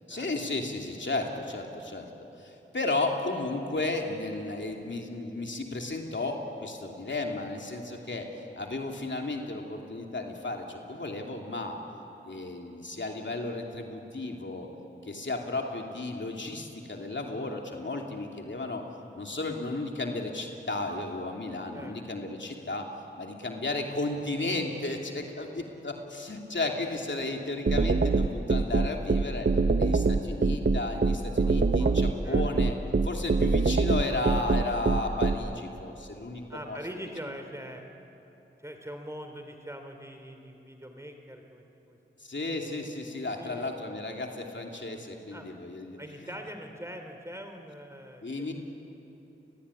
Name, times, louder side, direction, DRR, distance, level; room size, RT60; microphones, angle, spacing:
voice 1, 0.1-2.1 2.4-8.3 8.6-11.8 12.2-14.7 15.0-18.8 19.1-22.9 23.2-29.5 29.7-32.7 33.0-36.4 36.7-36.8 42.2-46.3 48.2-48.5, left 2 dB, 60° left, 2 dB, 3.0 m, -34 dB
sound 1, 27.7-35.3, right 4 dB, 60° right, 1.2 m, -23 dB
voice 2, 36.5-37.8 38.6-42.0 43.4-43.7 45.3-45.5 46.0-48.5, equal, 15° right, 5 dB, 3.6 m, -42 dB
30.0 x 20.0 x 9.9 m, 2.9 s
cardioid pair, 45°, 21 cm